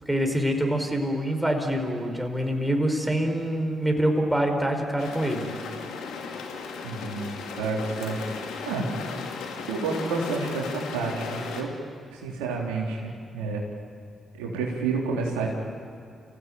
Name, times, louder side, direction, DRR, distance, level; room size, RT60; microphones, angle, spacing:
voice 1, 0.1-5.5, right 1 dB, 10° right, 3 dB, 5.2 m, -25 dB
sound 1, 5.0-11.6, left 5 dB, 75° left, 2.5 m, -36 dB
voice 2, 6.8-8.2 8.7-8.8 9.7-11.7 12.1-13.6 14.4-15.5, right 4 dB, 90° right, -2 dB, 3.5 m, -29 dB
28.0 x 17.0 x 9.2 m, 2.4 s
hypercardioid pair, 45°, 0 cm